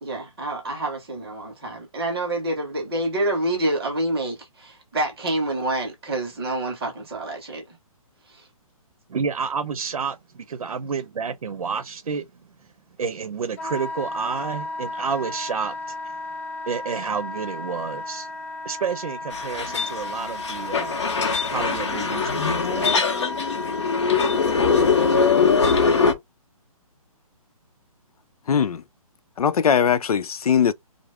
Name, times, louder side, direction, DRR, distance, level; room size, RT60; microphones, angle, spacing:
voice 1, 0.0-7.6 8.3-8.5, right 1 dB, 5° right, 0.4 m, -27 dB
voice 2, 9.1-12.3 13.0-16.2 16.7-18.3 18.6-21.0 21.5-22.9, right 6 dB, 85° right, 0.8 m, -30 dB
Wind instrument woodwind instrument, 13.6-25.4, left 2 dB, 25° left, 0.8 m, -34 dB
sound 1, 19.3-26.1, left 5 dB, 50° left, 0.9 m, -22 dB
voice 3, 28.5-28.8 29.4-30.7, left 7 dB, 85° left, 0.5 m, -20 dB
5.1 x 2.0 x 3.5 m
hypercardioid pair, 180°, 19 cm